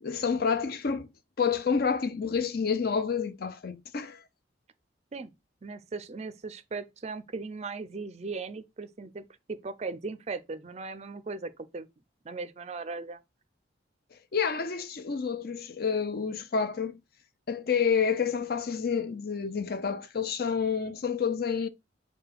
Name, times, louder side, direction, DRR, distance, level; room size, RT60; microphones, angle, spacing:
voice 1, 0.0-1.1 1.4-4.2 14.3-17.0 17.5-21.7, left 6 dB, 50° left, 0.5 m, -29 dB
voice 2, 5.6-11.9 12.2-13.2, right 4 dB, 35° right, 0.4 m, -38 dB
4.8 x 2.3 x 4.7 m
head